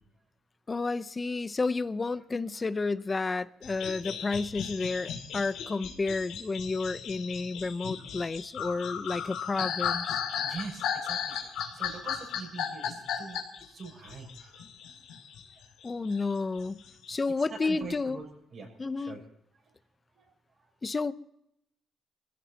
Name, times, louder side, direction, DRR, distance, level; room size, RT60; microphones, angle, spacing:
voice 1, 0.7-10.2 15.8-16.8 17.1-18.2 18.8-19.2 20.8-21.1, left 3 dB, 25° left, 0.7 m, -31 dB
sound 1, 3.6-15.4 15.8-17.1, left 8 dB, 85° left, 2.6 m, -35 dB
voice 2, 10.4-14.7 15.5-15.6 17.5-18.3 18.5-18.7 19.0-19.2 19.6-19.7 20.1-20.3, right 4 dB, 55° right, 6.4 m, -43 dB
23.0 x 15.5 x 2.9 m
cardioid pair, 90°, 0 cm